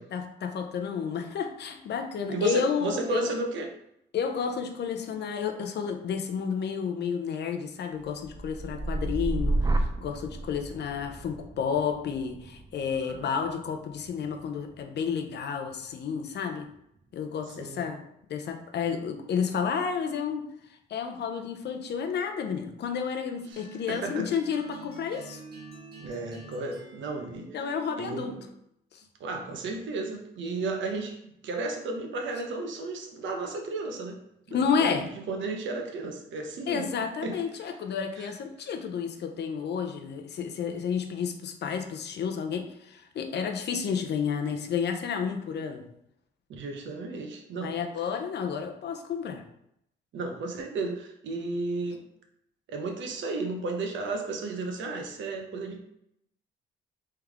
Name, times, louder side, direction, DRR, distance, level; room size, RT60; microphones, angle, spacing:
voice 1, 0.1-3.3 4.1-16.7 17.1-18.0 18.3-20.5 20.9-25.4 27.5-28.3 28.9-29.0 34.5-35.1 36.7-45.8 47.6-49.4, left 6 dB, 60° left, 5 dB, 0.6 m, -31 dB
voice 2, 2.3-3.7 12.9-13.3 17.5-17.9 23.5-24.3 26.0-27.5 28.0-28.4 29.2-31.2 31.4-34.2 34.5-35.0 35.3-36.9 37.2-37.7 38.2-38.3 46.5-47.7 50.1-52.0 52.7-55.8, right 3 dB, 70° right, 3 dB, 0.9 m, -33 dB
sound 1, 8.0-16.1 16.5-17.0, right 2 dB, 20° right, 0.4 m, -33 dB
sound 2, 23.5-28.6, right 4 dB, 50° right, 1.1 m, -47 dB
3.5 x 3.2 x 3.5 m, 0.77 s
cardioid pair, 90°, 20 cm